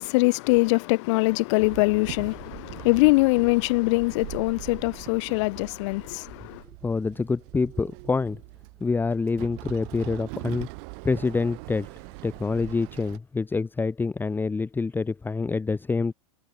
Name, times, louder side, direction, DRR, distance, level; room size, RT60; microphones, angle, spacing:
voice 1, 0.0-6.6, left 24 dB, 55° left, 4.9 m, -23 dB
Walk footsteps / Chatter / Hiss, 1.6-13.2, right 40 dB or more, 50° right, 5.1 m, -42 dB
voice 2, 6.8-8.4 8.8-10.7 11.0-11.9 12.2-16.1, left 4 dB, 10° left, 1.3 m, -26 dB
hypercardioid pair, 105°, 18 cm